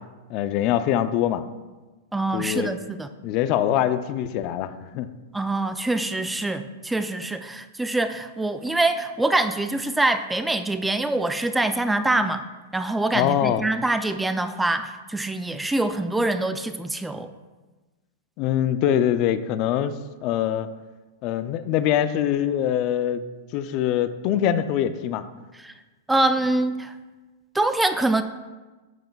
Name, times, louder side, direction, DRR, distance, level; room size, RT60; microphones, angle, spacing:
voice 1, 0.3-1.4 2.3-2.7 3.2-5.1 13.1-13.6 18.4-20.7 21.2-23.2 23.5-25.2, left 10 dB, 45° left, 12 dB, 0.5 m, -23 dB
voice 2, 2.1-3.1 5.3-12.5 12.7-17.3 25.6-25.7 26.1-26.9 27.5-28.2, right 2 dB, 5° right, 9 dB, 0.4 m, -24 dB
12.0 x 7.8 x 2.4 m, 1.2 s
hypercardioid pair, 120°, 0 cm